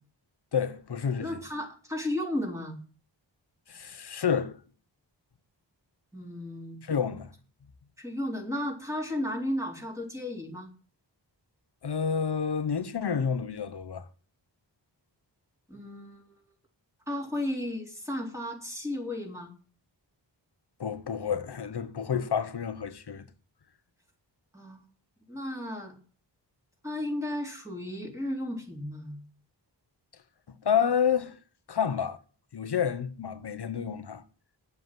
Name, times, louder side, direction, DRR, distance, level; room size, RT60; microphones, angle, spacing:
voice 1, 0.5-1.4 3.7-4.5 6.8-7.3 11.8-14.0 20.8-23.2 30.6-31.3 31.7-32.2 32.5-34.2, left 7 dB, 65° left, 1.1 m, -29 dB
voice 2, 1.2-2.8 6.1-6.8 8.0-10.7 15.7-16.2 17.1-19.5 24.5-24.8 25.3-25.9 26.8-29.2, left 1 dB, 5° right, 3.9 m, -34 dB
9.2 x 8.2 x 7.7 m
wide cardioid pair, 110°, 43 cm